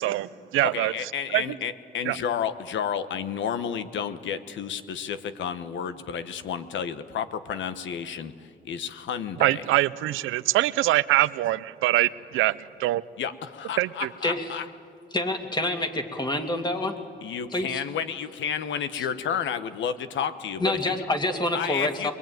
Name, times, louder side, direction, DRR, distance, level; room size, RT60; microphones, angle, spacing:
voice 1, 0.0-0.9 1.3-1.5 2.1-2.2 9.4-13.0 13.8-14.1, right 16 dB, 90° right, 17 dB, 0.6 m, -24 dB
voice 2, 0.6-9.6 13.2-14.7 17.2-20.9 21.5-22.1, left 8 dB, 70° left, 11 dB, 1.2 m, -31 dB
voice 3, 15.1-16.9 17.5-17.8 19.0-19.1 20.6-22.1, left 1 dB, 20° left, 5 dB, 2.4 m, -27 dB
22.5 x 21.5 x 9.3 m, 2.3 s
cardioid pair, 90°, 20 cm